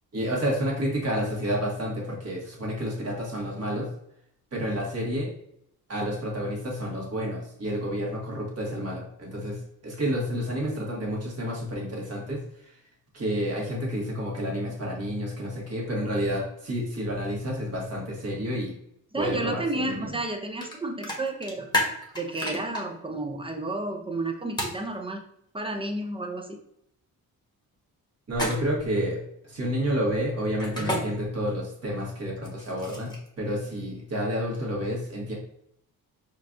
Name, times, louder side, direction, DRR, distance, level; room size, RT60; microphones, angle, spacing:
voice 1, 0.1-3.9 4.5-5.3 5.9-12.7 13.1-18.7 19.1-20.1 28.3-35.3, equal, 40° right, -2 dB, 1.4 m, -30 dB
voice 2, 19.1-21.7 22.1-25.2 25.5-26.6, right 2 dB, 15° right, 3 dB, 0.4 m, -31 dB
sound 1, 20.6-20.7 21.0-22.8 24.6-24.8 28.3-28.9 30.6-31.0 32.4-33.3, left 1 dB, 10° left, 1.0 m, -29 dB
4.5 x 2.3 x 2.5 m, 0.74 s
cardioid pair, 90°, 37 cm